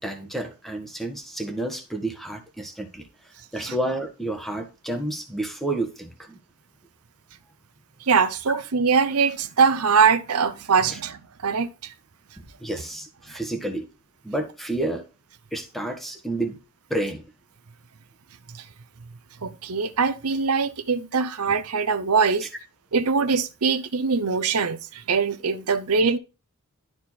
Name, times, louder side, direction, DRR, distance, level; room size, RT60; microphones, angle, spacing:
voice 1, 0.0-3.0 3.5-6.4 8.5-8.6 12.6-13.9 14.2-15.0 15.5-16.6 16.9-17.2, right 1 dB, ahead, 1.3 m, -30 dB
voice 2, 8.1-11.9 19.4-22.5 22.9-26.2, right 5 dB, 85° right, 0.8 m, -22 dB
11.5 x 4.4 x 4.3 m
head